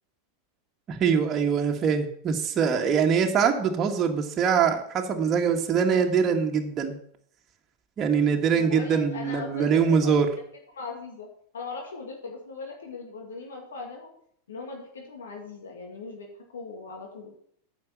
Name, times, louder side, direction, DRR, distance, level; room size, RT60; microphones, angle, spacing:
voice 1, 0.9-7.0 8.0-10.3, right 6 dB, 35° right, 2 dB, 1.7 m, -23 dB
voice 2, 8.5-10.3 10.7-11.3 11.5-14.1 14.5-17.3, left 4 dB, 75° left, 1 dB, 2.2 m, -39 dB
9.6 x 6.7 x 7.5 m, 0.63 s
hypercardioid pair, 90°, 0 cm